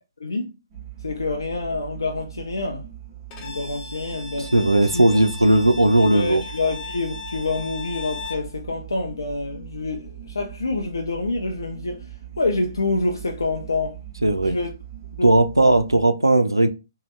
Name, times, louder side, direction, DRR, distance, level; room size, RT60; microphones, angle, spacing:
voice 1, 0.2-0.6 1.0-2.9 3.4-4.5 4.9-5.0 6.1-12.1 12.4-14.0 14.4-14.7 15.2-15.3 15.6-15.8, left 3 dB, 70° left, 0.5 m, -27 dB
sound 1, 0.7-16.0, right 11 dB, 30° right, 0.8 m, -40 dB
Bowed string instrument, 3.3-8.5, left 4 dB, 25° left, 0.6 m, -37 dB
voice 2, 4.5-6.4 14.2-14.6 15.2-16.7, right 1 dB, 90° right, 0.4 m, -17 dB
2.7 x 2.2 x 3.2 m
figure-of-eight pair, 125°, 2 cm